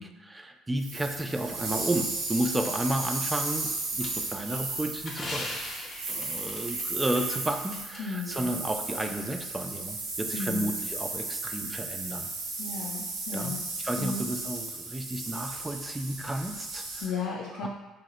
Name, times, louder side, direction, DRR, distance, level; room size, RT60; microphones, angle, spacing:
voice 1, 0.0-5.6 6.1-12.3 13.3-17.1 17.6-17.7, right 1 dB, 15° right, 5 dB, 0.3 m, -32 dB
sound 1, 0.8-17.1, right 3 dB, 80° right, 0.6 m, -35 dB
sound 2, 4.0-8.0 8.3-8.4 9.0-9.1, left 2 dB, 40° left, 0.6 m, -40 dB
voice 2, 8.0-8.5 10.3-10.7 12.6-13.6 14.0-14.3 17.0-17.7, left 4 dB, 75° left, -2 dB, 0.3 m, -34 dB
2.8 x 2.0 x 3.8 m, 1.1 s
hypercardioid pair, 65°, 0 cm